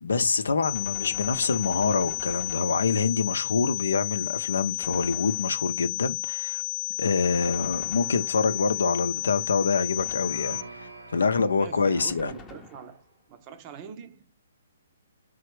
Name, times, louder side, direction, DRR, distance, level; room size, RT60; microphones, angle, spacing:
voice 1, 0.0-6.6 7.0-10.6 11.1-12.3, left 4 dB, 75° left, 0.6 m, -26 dB
sound 1, 0.6-10.6, left 21 dB, 35° left, 1.0 m, -32 dB
Gunshot gunfire, 0.7-3.2 4.8-5.9 7.2-8.7 10.0-10.8 12.0-13.1, left 3 dB, 10° left, 0.7 m, -47 dB
sound 2, 7.0-13.0, right 2 dB, 85° right, 2.0 m, -45 dB
voice 2, 11.5-13.0 13.3-14.4, right 7 dB, 30° right, 0.7 m, -43 dB
3.8 x 3.3 x 3.1 m
figure-of-eight pair, 130°, 0 cm